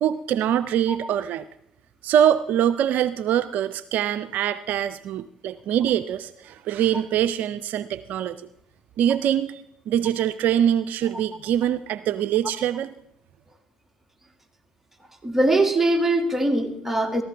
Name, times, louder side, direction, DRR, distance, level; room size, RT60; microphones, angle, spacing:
voice 1, 0.0-1.5 2.0-8.4 9.0-12.9, right 10 dB, 65° right, 0.4 m, -23 dB
voice 2, 15.2-17.2, right 2 dB, 10° right, 2.1 m, -22 dB
15.5 x 14.0 x 3.4 m
hypercardioid pair, 60°, 3 cm